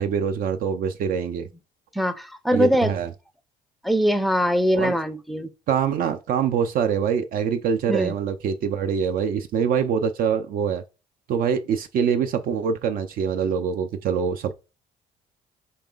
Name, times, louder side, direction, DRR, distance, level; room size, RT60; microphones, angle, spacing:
voice 1, 0.0-1.5 2.5-3.1 4.7-5.0 5.7-10.8 11.3-14.5, right 7 dB, 60° right, 0.4 m, -24 dB
voice 2, 1.9-2.9 3.8-5.5 7.9-8.1, equal, ahead, 0.4 m, -22 dB
4.5 x 3.1 x 3.8 m
cardioid pair, 110°, 17 cm